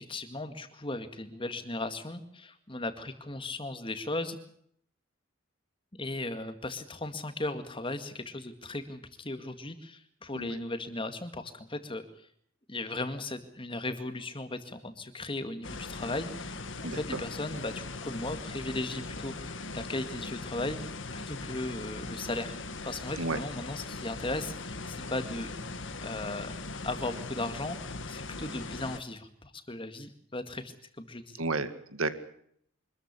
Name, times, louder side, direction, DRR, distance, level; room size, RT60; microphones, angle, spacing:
voice 1, 0.0-4.4 6.0-12.0 12.7-16.6 16.9-20.8 21.1-22.5 22.8-25.5 26.0-26.5 26.8-31.4, left 2 dB, 25° left, 9 dB, 2.1 m, -37 dB
sound 1, 15.6-29.0, left 3 dB, 60° left, 1.7 m, -40 dB
voice 2, 16.8-17.2 23.2-23.4 31.4-32.1, right 3 dB, 80° right, 11 dB, 2.1 m, -32 dB
25.0 x 14.0 x 9.7 m, 0.69 s
head